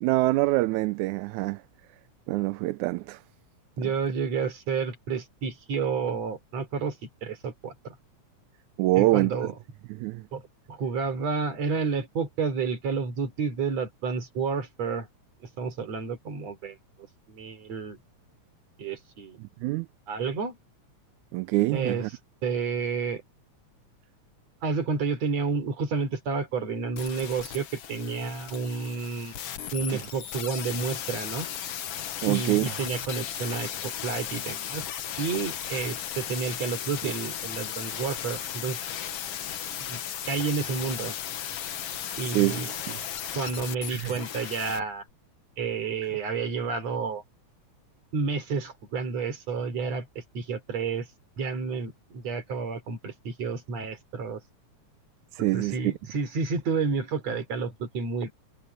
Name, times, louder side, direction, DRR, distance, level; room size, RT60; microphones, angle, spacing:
voice 1, 0.0-1.6 2.3-3.2 3.8-3.9 8.8-9.4 9.9-10.3 19.4-19.9 21.3-22.1 29.9-30.0 32.2-32.7 37.0-37.1 42.3-43.0 43.9-44.1 55.3-55.8, right 19 dB, 85° right, 2.0 m, -25 dB
voice 2, 3.8-7.0 7.2-7.9 9.0-9.5 10.3-10.4 10.7-15.1 15.6-16.8 17.3-18.0 18.8-19.4 20.1-20.6 21.7-22.0 22.4-23.2 24.6-29.3 29.7-31.5 32.3-34.8 35.2-38.8 39.9-40.0 40.3-41.1 42.2-42.7 43.4-45.0 45.6-47.2 48.1-50.1 50.3-51.1 51.4-54.4 55.5-58.3, right 5 dB, 60° right, 4.6 m, -30 dB
sound 1, 27.0-44.8 45.1-45.2, left 10 dB, 60° left, 2.0 m, -36 dB
omnidirectional pair, 3.4 m